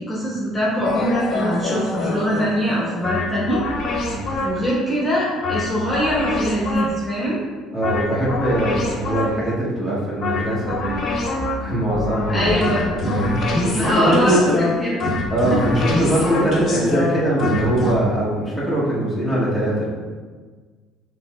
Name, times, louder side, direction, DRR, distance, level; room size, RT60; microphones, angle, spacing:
voice 1, 0.0-3.6 4.4-7.4 12.3-12.8 13.7-15.0 15.5-15.7, equal, 10° left, -7 dB, 1.4 m, -22 dB
sound 1, 0.8-4.8 5.4-7.2 7.8-9.6 10.2-17.9, left 2 dB, 45° left, 0.9 m, -24 dB
voice 2, 7.7-11.0 11.3-12.5 12.7-14.4 15.3-19.9, right 1 dB, 10° right, -9 dB, 1.4 m, -22 dB
6.7 x 3.1 x 2.5 m, 1.4 s
cardioid pair, 130°, 0 cm